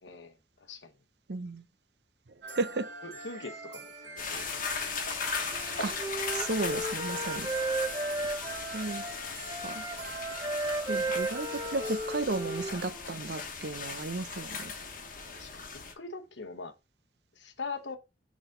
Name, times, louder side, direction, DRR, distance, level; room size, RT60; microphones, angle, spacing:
voice 1, 0.0-0.9 3.0-4.9 15.3-16.7 17.3-18.0, left 4 dB, 80° left, 1.1 m, -43 dB
voice 2, 1.3-1.6 2.5-2.9 5.8-5.9 6.3-7.5 8.7-9.0 9.6-9.8 10.9-14.7, right 3 dB, 65° right, 0.7 m, -34 dB
sound 1, 2.4-12.9, right 3 dB, 80° right, 2.2 m, -45 dB
sound 2, 4.2-15.9, left 5 dB, 50° left, 1.2 m, -38 dB
Wind instrument woodwind instrument, 5.5-9.1 9.5-13.1, right 2 dB, 20° right, 0.9 m, -35 dB
6.2 x 4.1 x 3.7 m
head